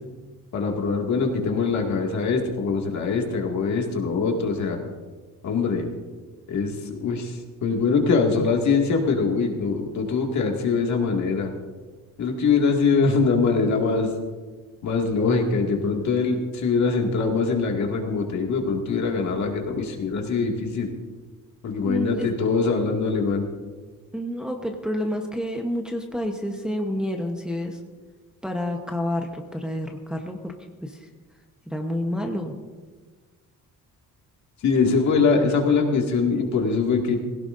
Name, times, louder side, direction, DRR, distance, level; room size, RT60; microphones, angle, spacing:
voice 1, 0.5-4.8 5.4-5.9 6.5-11.5 12.2-14.1 14.8-20.9 21.6-23.5 34.6-37.2, left 4 dB, 60° left, 1 dB, 2.2 m, -23 dB
voice 2, 21.8-22.3 24.1-27.8 28.4-30.5 30.8-31.1 31.7-32.5, left 1 dB, ahead, 2 dB, 1.0 m, -29 dB
20.0 x 17.0 x 2.6 m, 1.4 s
cardioid pair, 150°, 33 cm